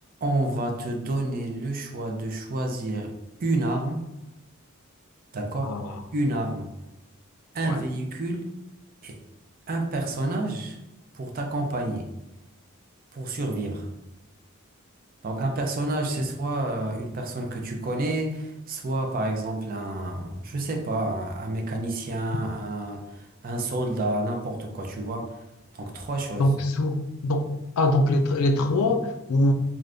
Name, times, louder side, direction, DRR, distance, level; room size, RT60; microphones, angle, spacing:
voice 1, 0.2-3.1 3.4-4.1 5.3-5.8 6.1-6.7 7.5-8.5 9.0-9.2 9.7-10.8 11.1-12.1 13.1-13.9 15.2-26.5, right 2 dB, 40° right, 3 dB, 0.4 m, -29 dB
voice 2, 5.6-5.9 7.6-7.8 26.4-27.4 27.8-29.5, left 1 dB, 80° left, 5 dB, 0.4 m, -23 dB
3.3 x 2.6 x 2.5 m, 0.96 s
head